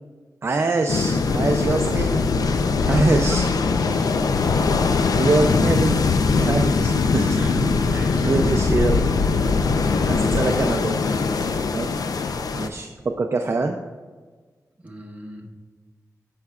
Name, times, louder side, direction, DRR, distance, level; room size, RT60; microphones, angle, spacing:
voice 1, 0.4-3.5 5.2-6.0 6.3-7.7 8.2-9.0 9.3-9.5 10.1-11.0 11.7-11.9 12.5-13.8, right 3 dB, 40° right, 4 dB, 0.5 m, -24 dB
sound 1, 0.9-12.7, left 4 dB, 75° left, 0.5 m, -21 dB
voice 2, 2.7-3.4 3.8-4.0 7.4-7.6 7.9-8.3 9.8-10.6 11.3-11.5 14.8-15.5, right 1 dB, 20° right, -1 dB, 1.3 m, -37 dB
14.5 x 5.7 x 2.4 m, 1.4 s
wide cardioid pair, 115°, 6 cm